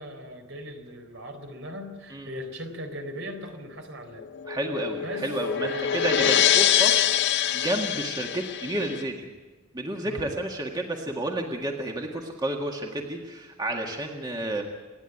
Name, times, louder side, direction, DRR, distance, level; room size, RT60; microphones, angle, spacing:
voice 1, 0.0-4.2 5.0-6.3 10.0-10.4, equal, 65° right, 4 dB, 4.2 m, -39 dB
sound 1, 4.2-9.0, left 9 dB, 55° left, 0.5 m, -24 dB
voice 2, 4.5-7.2 7.5-9.3 9.7-14.6, right 1 dB, 20° right, 1 dB, 1.8 m, -31 dB
27.0 x 10.5 x 9.3 m, 1.3 s
head